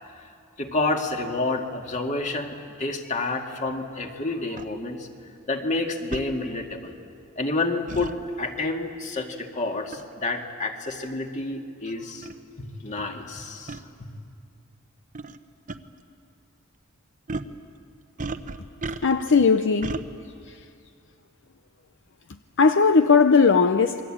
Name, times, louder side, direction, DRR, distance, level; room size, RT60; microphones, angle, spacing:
voice 1, 0.6-5.1 5.5-6.9 7.4-12.3 12.6-14.1, left 2 dB, 35° left, 2.1 m, -29 dB
sound 1, 4.6-4.7 6.1-6.3 7.9-8.1 9.9-10.1 10.9-11.0 11.9-12.0 12.2-12.4 13.7-13.8 15.1-15.4 15.7-15.8 17.3-17.5 18.2-19.3 19.8-20.0, right 3 dB, 35° right, 0.9 m, -33 dB
voice 2, 19.0-20.0 22.6-24.0, left 5 dB, 55° left, 0.7 m, -18 dB
28.5 x 22.5 x 8.8 m
head